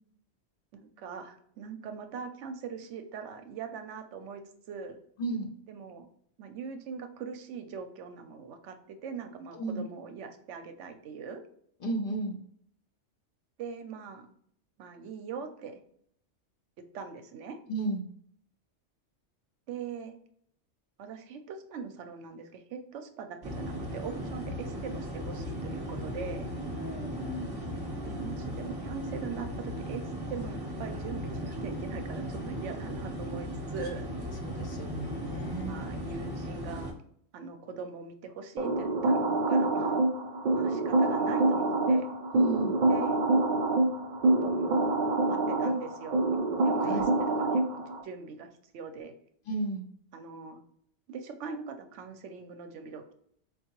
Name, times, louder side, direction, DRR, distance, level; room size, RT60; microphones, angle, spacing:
voice 1, 0.7-4.4 4.7-5.0 5.7-6.1 6.4-11.4 13.6-14.3 14.8-15.8 16.9-17.6 19.7-20.2 21.0-26.5 28.0-30.0 30.3-34.1 35.4-36.9 37.3-40.0 40.5-42.1 42.9-43.2 44.4-44.7 45.2-46.2 46.6-48.5 48.7-49.1 50.1-50.6 51.1-53.1, right 5 dB, 80° right, 7 dB, 0.9 m, -41 dB
voice 2, 11.8-12.3 17.7-18.0 26.8-27.4 34.4-35.7 42.3-42.8 46.8-47.0 49.5-49.8, right 2 dB, 55° left, 2 dB, 0.8 m, -34 dB
sound 1, 23.4-36.9, equal, 20° right, 0.8 m, -37 dB
sound 2, 38.6-48.0, right 2 dB, 60° right, 0.5 m, -26 dB
4.5 x 2.3 x 2.9 m, 0.67 s
omnidirectional pair, 1.2 m